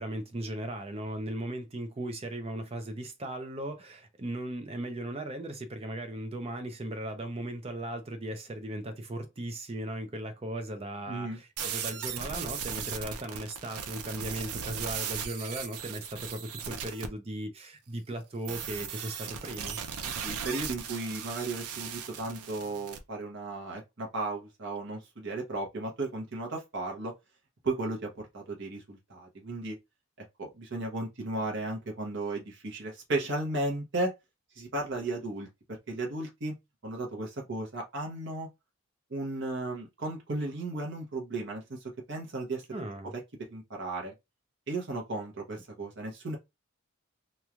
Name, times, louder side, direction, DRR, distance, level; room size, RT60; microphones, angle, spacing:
voice 1, 0.0-19.8 42.7-43.1, right 1 dB, 25° right, 0.5 m, -37 dB
voice 2, 11.1-11.4 11.7-11.8 20.1-27.1 27.6-29.8 30.2-34.1 34.6-36.5 36.8-38.5 39.1-42.6 43.1-43.2 43.5-44.1 44.7-46.4, right 2 dB, 50° right, 0.8 m, -35 dB
sound 1, 11.6-17.1 18.4-23.0, right 7 dB, 80° right, 0.5 m, -37 dB
3.0 x 2.2 x 2.3 m
head